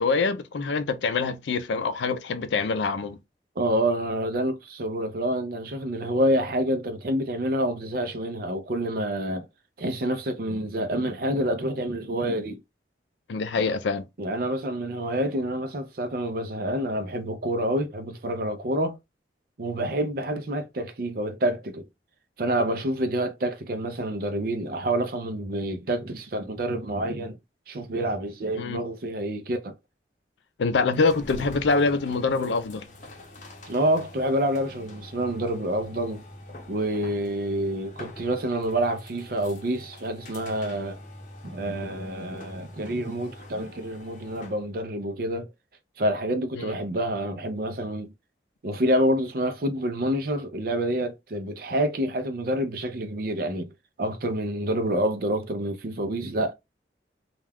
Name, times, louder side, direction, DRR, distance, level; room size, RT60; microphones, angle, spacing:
voice 1, 0.0-3.2 13.3-14.0 28.5-28.8 30.6-32.9 46.6-46.7, left 4 dB, 85° left, 0.4 m, -25 dB
voice 2, 3.6-9.5 9.8-12.6 14.2-19.0 19.6-21.9 22.4-27.4 27.7-29.7 33.7-36.2 36.7-41.0 41.4-45.5 46.0-48.1 48.6-56.5, right 1 dB, 55° right, 0.5 m, -27 dB
sound 1, 30.9-44.7, left 1 dB, 45° left, 0.7 m, -44 dB
2.3 x 2.2 x 3.3 m
head